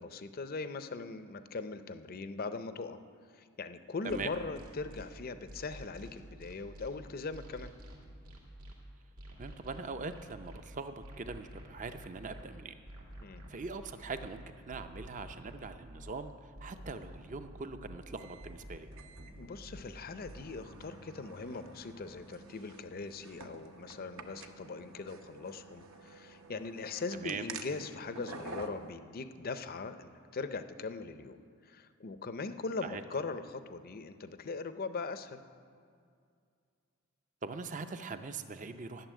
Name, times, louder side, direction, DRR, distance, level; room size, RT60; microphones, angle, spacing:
voice 1, 0.0-3.0 3.4-7.7 13.2-13.4 19.4-31.4 31.6-35.4, left 4 dB, 45° left, 11 dB, 0.5 m, -40 dB
sound 1, 4.1-5.0 5.5-6.9 7.3-8.7 9.2-10.6 11.0-12.4 12.9-14.3 14.7-16.1 16.6-18.0 18.4-19.8 20.2-20.5, equal, 80° right, 2.3 m, -49 dB
voice 2, 9.4-12.7 13.5-18.9 27.1-27.5 32.8-33.0 37.4-39.1, right 4 dB, 35° right, 9 dB, 0.6 m, -42 dB
sound 2, 18.2-28.9, right 3 dB, 65° right, 0.8 m, -50 dB
12.5 x 7.0 x 9.1 m, 2.3 s
head